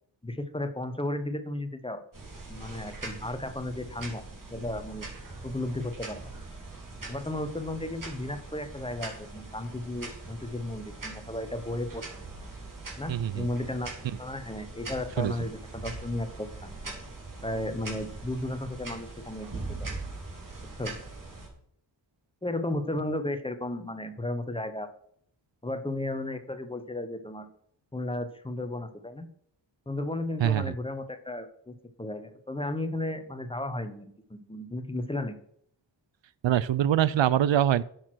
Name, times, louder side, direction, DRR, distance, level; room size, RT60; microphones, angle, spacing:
voice 1, 0.2-2.0 2.5-4.2 4.5-5.1 5.4-6.3 7.1-12.0 13.0-16.9 17.4-19.9 20.8-21.0 22.4-24.9 25.6-27.5 27.9-29.3 29.9-35.4, left 1 dB, 10° left, 9 dB, 1.0 m, -34 dB
sound 1, 2.1-21.5, right 3 dB, 45° right, 3.7 m, -42 dB
voice 2, 13.1-13.5 15.2-15.3 30.4-30.7 36.4-37.8, right 11 dB, 75° right, 19 dB, 0.5 m, -24 dB
10.5 x 6.5 x 6.2 m, 0.66 s
wide cardioid pair, 115°, 46 cm